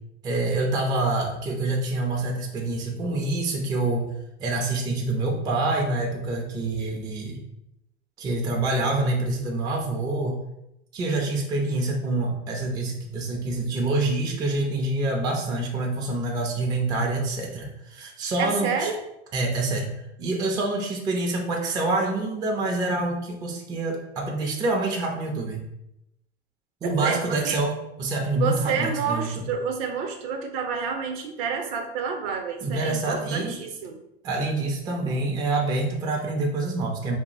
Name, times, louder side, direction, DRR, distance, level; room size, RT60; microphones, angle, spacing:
voice 1, 0.2-4.1 4.4-7.4 8.2-10.4 10.9-18.9 19.3-19.9 20.2-25.7 26.8-29.4 32.6-33.6 34.2-37.2, right 2 dB, 15° right, 0 dB, 0.3 m, -26 dB
voice 2, 18.4-19.0 26.8-27.6 28.4-34.0, right 6 dB, 60° right, 5 dB, 0.6 m, -29 dB
2.4 x 2.0 x 3.8 m, 0.84 s
hypercardioid pair, 110°, 32 cm